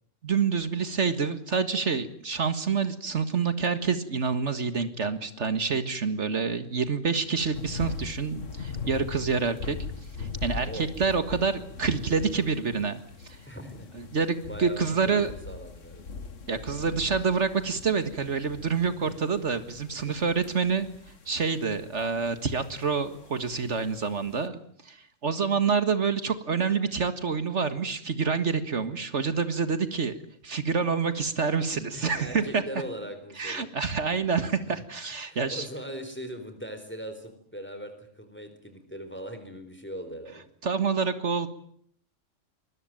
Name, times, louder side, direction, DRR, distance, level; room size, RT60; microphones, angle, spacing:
voice 1, 0.2-9.8 10.2-13.4 13.9-15.3 16.5-20.9 21.3-30.1 30.4-32.6 33.4-35.7 40.6-41.5, right 5 dB, 65° right, 11 dB, 2.0 m, -27 dB
sound 1, 7.5-24.5, left 5 dB, 80° left, 2.1 m, -41 dB
voice 2, 13.5-13.9 14.5-16.1 19.9-20.1 31.9-33.7 35.3-40.5, equal, 10° left, 8 dB, 4.2 m, -40 dB
24.0 x 21.5 x 9.1 m, 0.63 s
omnidirectional pair, 1.3 m